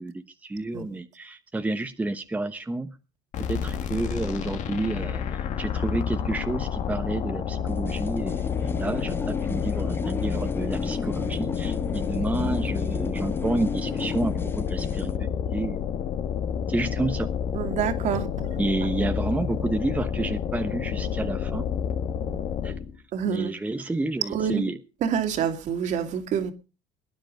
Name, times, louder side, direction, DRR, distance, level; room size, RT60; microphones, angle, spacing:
voice 1, 0.0-3.0 3.4-15.8 16.7-17.3 18.6-21.7 22.6-22.7 23.2-24.8, right 2 dB, 10° right, 1.0 m, -30 dB
sound 1, 3.3-23.0, left 8 dB, 55° left, 2.1 m, -29 dB
sound 2, 7.7-15.2, left 3 dB, 15° left, 0.9 m, -34 dB
voice 2, 17.5-18.5 23.1-23.5 24.3-24.7 25.0-26.5, right 8 dB, 55° right, 2.6 m, -27 dB
20.5 x 10.5 x 5.3 m
cardioid pair, 120°, 15 cm